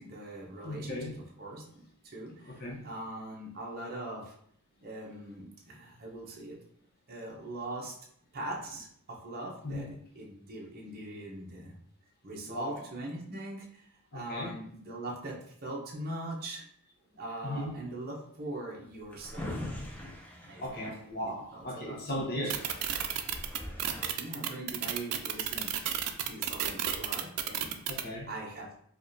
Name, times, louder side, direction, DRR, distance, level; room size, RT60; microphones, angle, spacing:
voice 1, 0.0-4.3 4.8-6.6 7.1-8.0 8.3-9.9 10.2-11.7 12.2-16.7 17.2-19.5 20.4-20.9 21.5-22.5 23.7-27.8 28.3-28.7, right 1 dB, 40° right, -2 dB, 0.8 m, -42 dB
voice 2, 0.6-1.1 2.4-2.8 9.6-9.9 12.5-12.8 14.1-14.6 17.4-17.8 20.6-22.6 27.9-28.3, left 1 dB, 45° left, -1 dB, 0.8 m, -36 dB
Drawer open or close, 18.9-21.6 22.1-22.2 22.4-24.1, left 1 dB, 5° left, 0.4 m, -42 dB
sound 1, 22.5-28.0, right 10 dB, 85° right, 0.4 m, -31 dB
4.8 x 2.4 x 2.6 m, 0.65 s
head